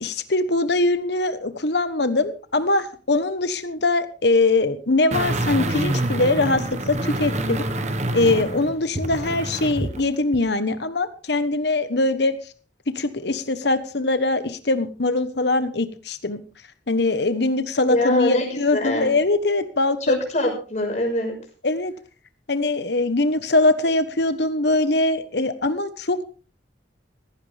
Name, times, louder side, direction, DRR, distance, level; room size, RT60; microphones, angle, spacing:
voice 1, 0.0-7.6 8.1-12.4 12.9-16.4 16.9-20.2 21.6-21.9 22.5-26.2, left 2 dB, 65° left, 11 dB, 1.2 m, -22 dB
sound 1, 5.1-10.0 10.3-10.4, right 1 dB, 40° right, 1.4 m, -26 dB
voice 2, 17.9-19.1 20.0-21.4, left 1 dB, 40° left, 2 dB, 5.7 m, -23 dB
16.5 x 15.5 x 3.5 m, 0.38 s
head